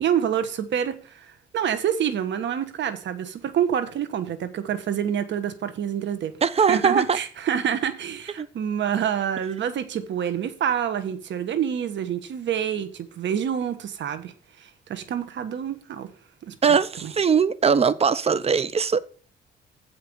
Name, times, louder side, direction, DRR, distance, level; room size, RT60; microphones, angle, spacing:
voice 1, 0.0-6.3 6.7-14.3 14.6-16.1 16.4-16.6 17.0-17.1, right 9 dB, 65° right, 1.3 m, -27 dB
voice 2, 6.4-7.2 8.4-8.5 16.6-19.0, right 6 dB, 30° right, 0.7 m, -20 dB
7.6 x 5.5 x 6.9 m
cardioid pair, 90°, 20 cm